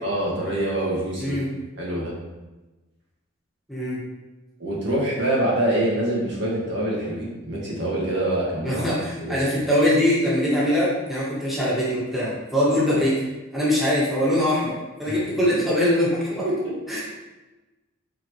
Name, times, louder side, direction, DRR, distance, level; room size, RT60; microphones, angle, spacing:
voice 1, 0.0-1.4 1.8-2.1 4.6-8.9 9.2-9.4 12.9-13.0 15.1-15.2 16.4-16.7, right 1 dB, 60° right, -5 dB, 2.0 m, -25 dB
voice 2, 1.2-1.5 3.7-4.0 8.6-13.2 13.5-16.5 16.9-17.0, left 1 dB, ahead, -9 dB, 1.9 m, -22 dB
8.3 x 4.5 x 3.2 m, 1.1 s
head